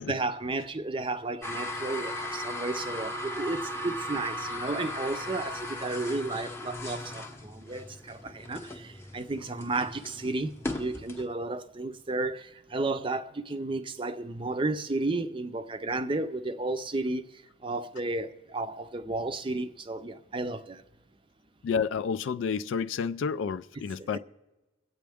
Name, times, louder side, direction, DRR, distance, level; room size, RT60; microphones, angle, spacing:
voice 1, 0.0-20.8 24.0-24.2, right 2 dB, 25° right, 0.5 m, -33 dB
sound 1, 1.4-11.3, left 1 dB, 10° left, 0.7 m, -37 dB
voice 2, 21.6-24.2, left 6 dB, 70° left, 0.3 m, -30 dB
23.5 x 8.4 x 3.5 m
head